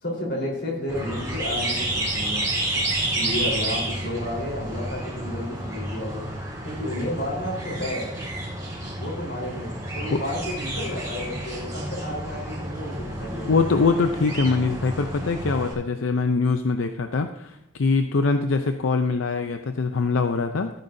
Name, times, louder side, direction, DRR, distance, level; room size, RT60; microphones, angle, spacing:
voice 1, 0.0-2.5 3.1-6.3 6.6-8.1 9.0-13.6, left 1 dB, 60° left, -2 dB, 3.9 m, -31 dB
sound 1, 0.9-15.7, right 1 dB, 15° right, 3.4 m, -30 dB
voice 2, 13.5-20.7, left 4 dB, 90° left, 7 dB, 0.5 m, -23 dB
14.5 x 9.2 x 2.7 m, 0.87 s
head